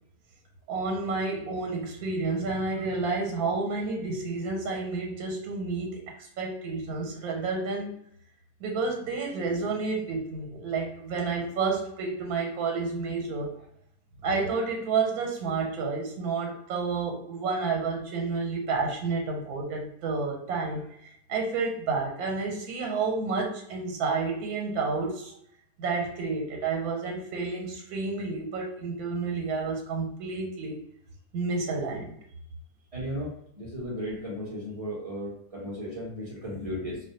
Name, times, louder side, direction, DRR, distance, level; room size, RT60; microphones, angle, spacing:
voice 1, 0.7-7.9 8.6-13.5 14.2-25.3 25.8-30.8 31.3-32.2, right 4 dB, 90° right, 1 dB, 1.1 m, -30 dB
voice 2, 32.9-37.0, equal, 55° right, -5 dB, 0.4 m, -35 dB
2.4 x 2.2 x 2.6 m, 0.68 s
omnidirectional pair, 1.6 m